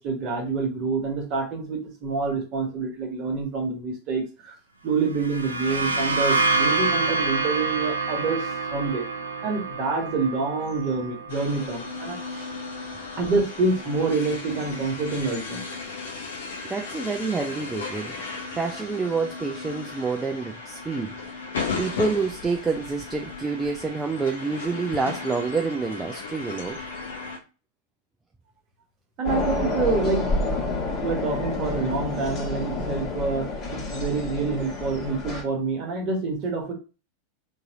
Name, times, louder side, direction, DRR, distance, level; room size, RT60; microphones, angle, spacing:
voice 1, 0.0-4.5 4.8-9.0 9.4-12.5 13.2-15.6 29.2-30.3 31.0-36.7, right 4 dB, 35° right, 1.4 m, -27 dB
sound 1, 5.1-12.7, right 3 dB, 75° right, 0.6 m, -27 dB
sound 2, 11.3-27.4, left 4 dB, 65° left, 1.0 m, -36 dB
voice 2, 16.6-18.3 18.6-21.2 21.8-26.8, right 4 dB, 10° right, 0.4 m, -28 dB
sound 3, 29.2-35.4, left 2 dB, 30° left, 1.4 m, -29 dB
3.9 x 2.9 x 3.6 m
figure-of-eight pair, 90°, 0 cm